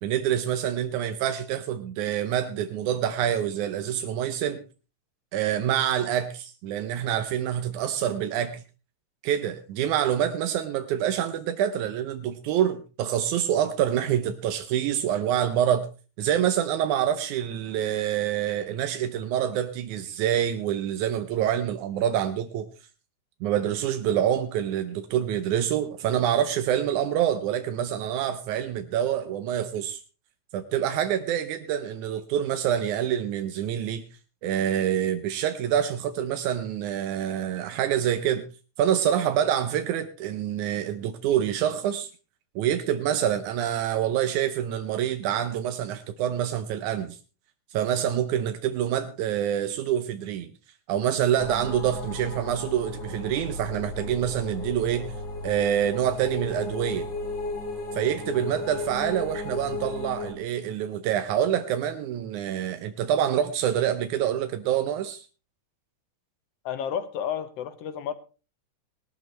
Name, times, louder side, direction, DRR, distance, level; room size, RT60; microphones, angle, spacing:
voice 1, 0.0-4.6 5.3-8.6 9.2-15.9 16.2-22.7 23.4-30.0 30.5-34.0 34.4-38.5 38.8-42.1 42.6-47.2 47.7-50.5 50.9-55.1 55.4-57.1 57.9-65.3, right 10 dB, 85° right, 2.2 m, -26 dB
sound 1, 51.4-60.3, left 2 dB, 25° left, 2.7 m, -35 dB
voice 2, 66.6-68.1, left 8 dB, 65° left, 1.8 m, -31 dB
19.0 x 12.5 x 3.2 m
omnidirectional pair, 3.4 m